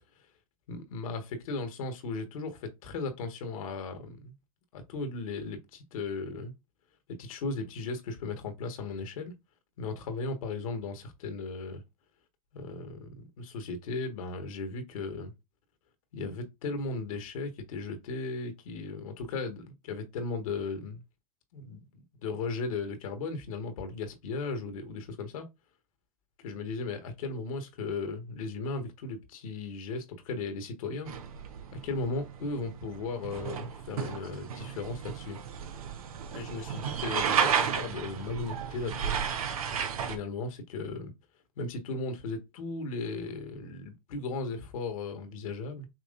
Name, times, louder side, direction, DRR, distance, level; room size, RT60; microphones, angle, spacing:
voice 1, 0.7-4.3 4.7-6.5 7.1-9.3 9.8-11.8 12.5-15.3 16.1-21.0 21.5-25.5 26.4-31.1 31.8-35.4 36.3-39.2 40.0-41.1 41.6-45.9, left 3 dB, 70° left, 1.6 m, -36 dB
sound 1, 31.1-40.2, right 7 dB, 75° right, 1.0 m, -33 dB
6.0 x 3.1 x 2.5 m
hypercardioid pair, 105°, 18 cm